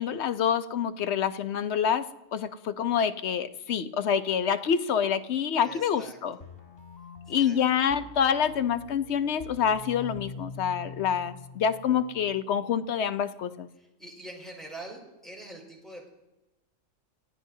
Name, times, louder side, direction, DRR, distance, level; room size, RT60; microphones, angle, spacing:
voice 1, 0.0-2.0 2.3-6.4 7.3-13.7, left 8 dB, 60° left, 10 dB, 0.9 m, -27 dB
voice 2, 5.6-6.4 7.3-7.6 13.8-16.1, right 1 dB, ahead, -3 dB, 5.0 m, -44 dB
sound 1, 6.4-12.4, left 3 dB, 45° left, 3.6 m, -45 dB
29.0 x 16.0 x 2.7 m, 1.0 s
omnidirectional pair, 1.4 m